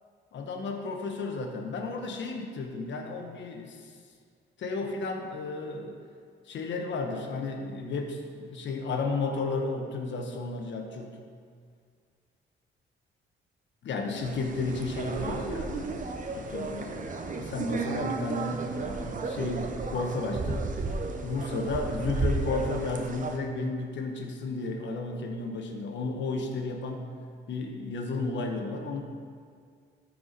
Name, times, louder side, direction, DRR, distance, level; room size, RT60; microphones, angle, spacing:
voice 1, 0.3-3.9 4.6-6.0 6.5-11.2 13.8-16.0 16.3-20.7 21.2-27.1 27.5-29.0, left 3 dB, 65° left, 3 dB, 1.2 m, -33 dB
sound 1, 14.2-23.4, right 3 dB, 40° right, 0.9 m, -33 dB
13.5 x 4.8 x 4.1 m, 2.1 s
cardioid pair, 90°, 20 cm